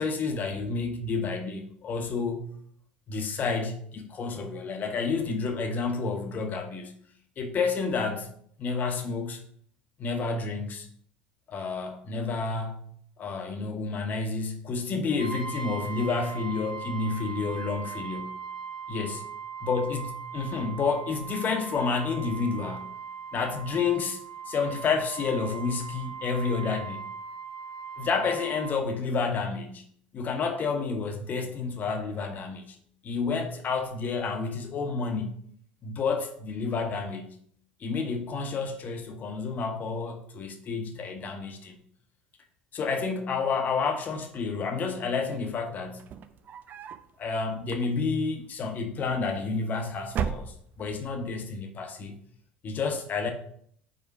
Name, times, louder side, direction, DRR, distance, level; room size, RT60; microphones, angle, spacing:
voice 1, 0.0-2.6 3.1-6.9 7.4-8.3 8.6-9.4 10.0-10.9 11.5-12.9 13.2-18.3 18.9-19.2 19.6-22.9 23.3-24.2 24.5-27.1 28.0-29.8 30.1-32.8 33.0-35.4 35.8-37.4 37.8-41.8 42.7-46.0 47.2-52.1 52.6-53.3, left 4 dB, 35° left, 1.1 m, -30 dB
Brass instrument, 15.2-28.8, right 6 dB, 70° right, 1.7 m, -39 dB
sound 1, 45.9-47.1 47.6-48.3 49.2-49.7 50.1-51.0, right 7 dB, 40° right, 0.5 m, -35 dB
5.0 x 4.9 x 4.7 m
figure-of-eight pair, 65°, 5 cm